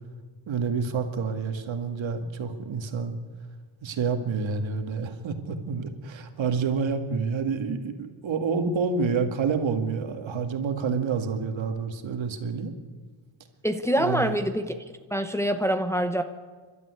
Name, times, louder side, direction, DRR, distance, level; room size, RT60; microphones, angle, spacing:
voice 1, 0.5-3.1 3.8-12.7 14.0-14.4, right 5 dB, 70° right, 6 dB, 2.2 m, -28 dB
voice 2, 13.6-14.7 15.1-16.2, equal, 5° left, 6 dB, 0.8 m, -25 dB
28.5 x 12.5 x 9.7 m, 1.5 s
wide cardioid pair, 165°, 48 cm